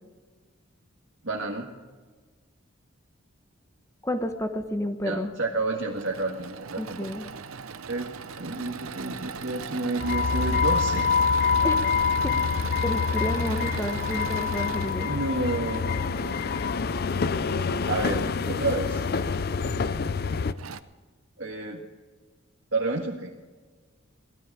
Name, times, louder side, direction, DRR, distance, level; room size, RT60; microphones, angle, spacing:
voice 1, 1.2-1.7 5.0-7.1 7.9-11.1 15.0-16.6 17.9-19.0 21.4-21.8 22.7-23.4, right 2 dB, 65° right, -1 dB, 1.7 m, -30 dB
voice 2, 4.0-5.4 6.8-7.3 11.6-11.8 12.2-12.3 12.8-15.1, equal, 15° left, 7 dB, 1.1 m, -30 dB
Engine / Mechanisms, 5.8-15.9 17.5-18.2 18.9-19.0 19.3-19.4 20.2-20.3 20.6-20.8, right 5 dB, 85° right, 0.7 m, -38 dB
sound 1, 10.0-20.5, left 5 dB, 45° left, 0.5 m, -26 dB
18.0 x 12.5 x 4.8 m, 1.4 s
head